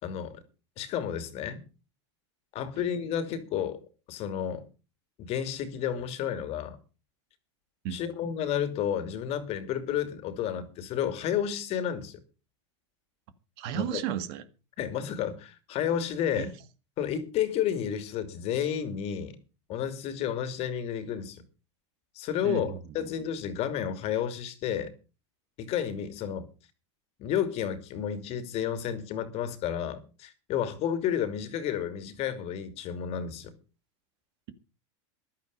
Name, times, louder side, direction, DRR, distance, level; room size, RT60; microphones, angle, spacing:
voice 1, 0.0-0.4 0.8-1.6 2.5-3.8 4.1-4.6 5.2-6.8 7.9-12.2 13.7-14.0 14.8-16.5 17.0-19.4 19.7-21.4 22.1-24.9 25.6-26.5 27.2-33.5, left 9 dB, 40° left, 2.7 m, -31 dB
voice 2, 13.6-14.4 16.4-16.5 22.4-22.6, right 10 dB, 55° right, 1.9 m, -32 dB
14.5 x 12.0 x 5.3 m
supercardioid pair, 125°, 15 cm